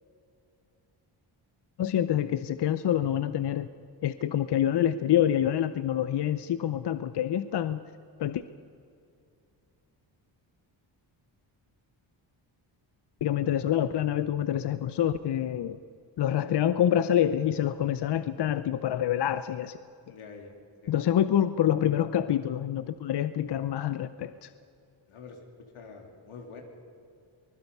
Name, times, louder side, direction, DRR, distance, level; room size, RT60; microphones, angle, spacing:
voice 1, 1.8-3.7 4.0-7.8 8.2-8.4 13.2-15.8 16.2-19.8 20.9-24.5, left 10 dB, 55° left, 12 dB, 0.7 m, -26 dB
voice 2, 20.1-20.6 20.8-21.2 25.1-25.4 25.7-26.6, left 5 dB, 90° left, 2 dB, 3.3 m, -46 dB
24.5 x 20.0 x 5.5 m, 2.5 s
cardioid pair, 115°, 48 cm